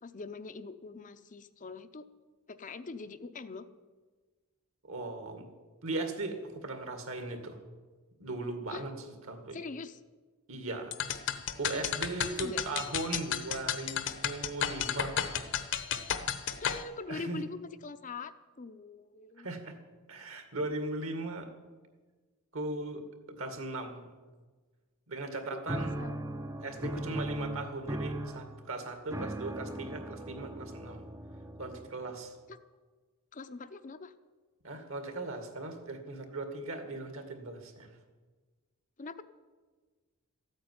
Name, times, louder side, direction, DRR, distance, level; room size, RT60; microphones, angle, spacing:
voice 1, 0.0-2.1 2.5-3.7 8.7-8.8 9.5-10.0 12.4-12.8 16.6-19.5 25.5-26.2 26.8-26.9 32.5-32.6 33.3-34.1 39.0-39.2, left 3 dB, 35° left, 10 dB, 0.6 m, -43 dB
voice 2, 4.8-5.4 5.8-7.6 8.2-8.9 9.3-9.6 10.5-10.9 11.6-15.3 17.1-17.4 19.4-19.7 20.1-21.5 22.5-23.0 23.4-24.1 25.1-25.9 26.6-31.0 31.6-32.3 34.6-37.9, right 2 dB, 65° right, 6 dB, 2.2 m, -38 dB
sound 1, 10.9-16.8, left 8 dB, 55° left, 1.0 m, -33 dB
sound 2, 25.7-32.2, right 1 dB, 15° right, 0.6 m, -38 dB
14.0 x 9.0 x 9.4 m, 1.4 s
head